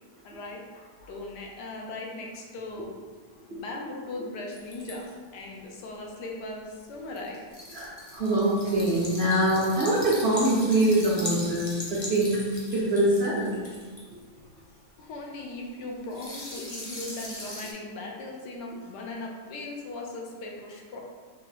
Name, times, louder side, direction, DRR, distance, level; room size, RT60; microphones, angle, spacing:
voice 1, 0.2-2.9 3.5-7.4 15.0-21.0, left 2 dB, 85° left, 0 dB, 1.3 m, -38 dB
sound 1, 4.5-5.1 7.2-14.4 16.1-17.7, left 1 dB, 40° left, 0.4 m, -39 dB
voice 2, 7.7-12.4 12.7-13.6, right 1 dB, 50° right, -7 dB, 0.9 m, -24 dB
4.3 x 2.7 x 3.3 m, 1.5 s
omnidirectional pair, 1.8 m